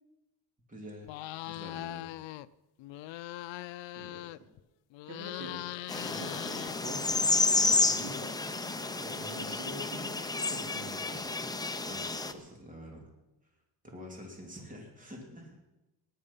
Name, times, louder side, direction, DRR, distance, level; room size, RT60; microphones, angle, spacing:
voice 1, 0.7-1.1 1.4-2.1 11.8-13.1 13.8-15.6, equal, 20° right, 1 dB, 3.0 m, -47 dB
sound 1, 1.0-2.5 2.8-4.6 4.9-7.2, left 17 dB, 85° left, 0.6 m, -41 dB
voice 2, 4.0-4.5 5.1-5.7 6.1-7.3 7.6-8.5 9.0-11.3, right 1 dB, 65° right, 1 dB, 3.7 m, -45 dB
sound 2, 5.9-12.3, left 3 dB, 10° left, 0.8 m, -30 dB
17.5 x 11.0 x 5.6 m, 0.99 s
cardioid pair, 125°, 43 cm